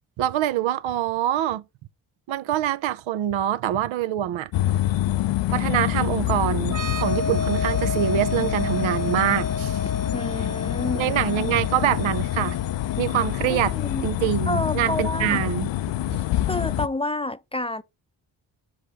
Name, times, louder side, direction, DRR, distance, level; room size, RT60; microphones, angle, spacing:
voice 1, 0.2-1.6 2.3-4.5 5.5-9.8 10.9-12.6 13.0-13.7 14.0-15.7 16.1-16.2, right 11 dB, 80° right, 0.6 m, -25 dB
sound 1, 4.5-16.9, left 14 dB, 70° left, 0.5 m, -26 dB
sound 2, 6.7-14.2, left 2 dB, 40° right, 1.0 m, -33 dB
voice 2, 10.1-11.1 13.5-14.1 14.5-15.4 16.4-17.8, left 2 dB, 15° left, 0.5 m, -29 dB
6.3 x 5.0 x 3.5 m
supercardioid pair, 45°, 46 cm